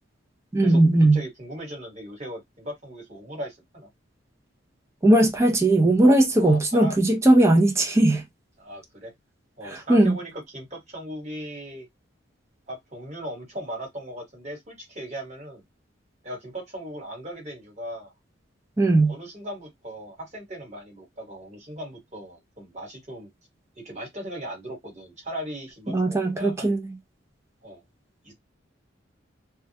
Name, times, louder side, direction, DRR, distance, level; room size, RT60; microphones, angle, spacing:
voice 1, 0.5-1.2 5.0-8.2 9.7-10.2 18.8-19.1 25.9-26.8, right 1 dB, 15° right, 0.4 m, -18 dB
voice 2, 1.1-3.9 6.4-6.9 8.6-9.1 9.6-11.9 12.7-15.6 16.2-18.1 19.1-23.3 23.8-26.7 27.6-27.8 28.2-28.3, equal, 35° right, 1.3 m, -38 dB
2.2 x 2.0 x 2.7 m
head